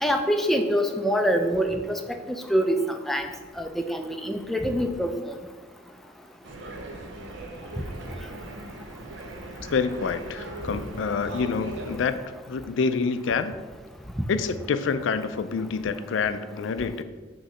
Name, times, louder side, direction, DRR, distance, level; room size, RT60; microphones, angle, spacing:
voice 1, 0.0-2.0 2.3-3.3 3.6-5.4, equal, ahead, 4 dB, 0.4 m, -25 dB
sound 1, 6.4-12.0, right 1 dB, 75° right, 0.8 m, -39 dB
voice 2, 9.7-12.2 12.5-13.5 14.3-17.0, left 5 dB, 75° left, 11 dB, 0.4 m, -27 dB
6.3 x 3.0 x 5.6 m, 1.3 s
head